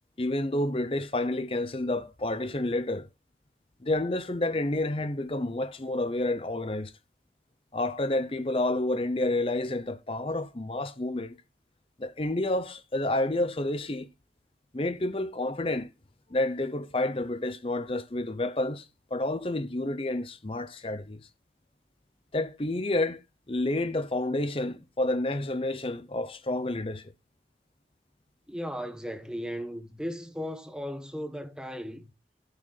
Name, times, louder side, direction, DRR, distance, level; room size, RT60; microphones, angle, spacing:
voice 1, 0.2-3.1 3.8-6.9 7.7-11.4 12.0-14.1 14.7-15.9 16.3-21.2 22.3-23.2 23.5-27.1, left 2 dB, 30° left, 0.7 m, -29 dB
voice 2, 28.5-32.1, equal, 5° right, 1.1 m, -36 dB
12.5 x 6.4 x 4.0 m
head